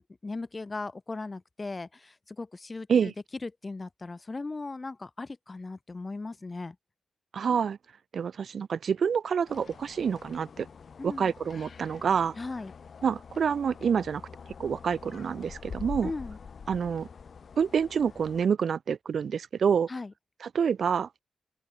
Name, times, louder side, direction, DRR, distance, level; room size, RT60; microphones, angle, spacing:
voice 1, 0.0-3.1 3.4-6.8 11.0-11.3 12.4-12.7 16.0-16.4 19.9-20.1, left 3 dB, 35° left, 2.5 m, -38 dB
voice 2, 7.3-7.8 8.1-10.7 11.0-12.4 13.0-14.2 14.6-16.1 16.7-17.1 17.6-19.9 20.4-21.1, right 7 dB, 70° right, 0.4 m, -27 dB
sound 1, 9.5-18.5, left 6 dB, 60° left, 5.6 m, -45 dB
open air
supercardioid pair, 50°, 0 cm